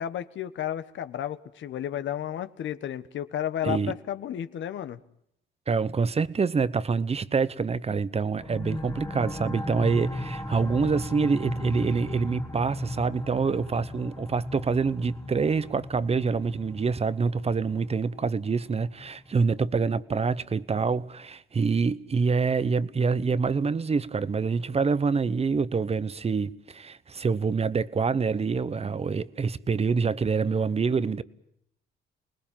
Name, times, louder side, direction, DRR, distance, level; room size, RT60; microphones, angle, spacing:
voice 1, 0.0-5.0, left 10 dB, 70° left, 1.4 m, -32 dB
voice 2, 5.7-31.2, right 5 dB, 30° right, 1.0 m, -26 dB
sound 1, 8.4-19.7, left 1 dB, 15° left, 1.8 m, -37 dB
29.5 x 20.0 x 7.4 m
cardioid pair, 90°, 20 cm